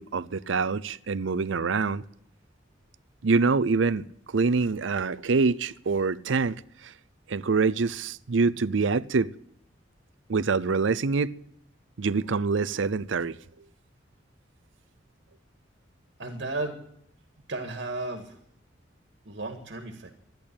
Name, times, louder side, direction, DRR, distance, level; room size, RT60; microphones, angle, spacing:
voice 1, 0.0-2.0 3.2-6.6 6.8-6.9 7.3-9.3 10.3-11.3 12.0-13.4, right 4 dB, 80° right, 0.6 m, -25 dB
voice 2, 16.2-16.8 17.5-18.4 19.3-20.1, right 2 dB, 60° right, 1.9 m, -34 dB
13.5 x 10.5 x 8.5 m
head